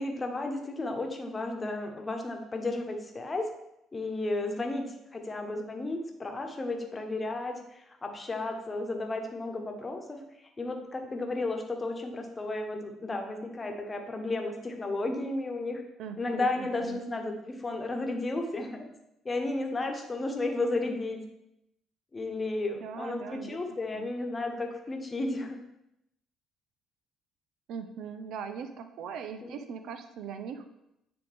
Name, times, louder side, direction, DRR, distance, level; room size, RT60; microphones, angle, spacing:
voice 1, 0.0-3.5 3.9-10.2 10.6-15.8 16.2-18.9 19.2-21.2 22.1-25.6 29.4-29.6, left 2 dB, 30° left, 4 dB, 1.1 m, -33 dB
voice 2, 16.0-17.0 22.7-23.6 23.9-24.1 27.7-30.7, right 7 dB, 65° right, 8 dB, 0.5 m, -40 dB
9.7 x 3.5 x 3.5 m, 0.83 s
hypercardioid pair, 50°, 0 cm